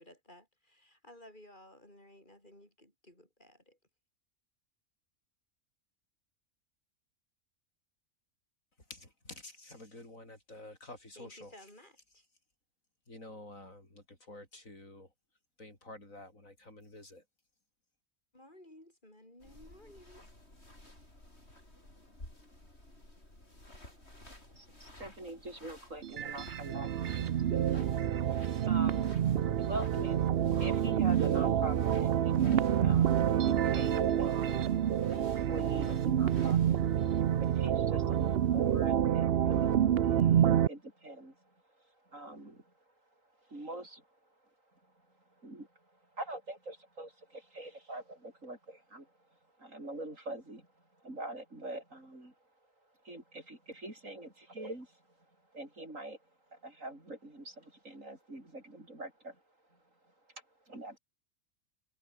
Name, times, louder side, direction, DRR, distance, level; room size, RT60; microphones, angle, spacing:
voice 1, 0.0-3.8 11.2-12.2 18.3-20.2, left 1 dB, 35° left, 8.0 m, -56 dB
voice 2, 8.9-11.5 13.1-15.1 15.6-17.2, left 2 dB, 75° left, 7.1 m, -50 dB
sound 1, 19.4-38.9, left 1 dB, 50° left, 7.7 m, -55 dB
voice 3, 24.5-29.2 29.6-30.3 30.6-42.7 43.4-44.2 44.7-44.8 45.4-52.4 53.0-55.2 55.5-56.2 56.5-59.4 59.7-60.1 60.7-61.0, right 1 dB, 70° right, 7.4 m, -45 dB
sound 2, 26.0-40.7, right 10 dB, 55° right, 0.8 m, -28 dB
omnidirectional pair, 1.4 m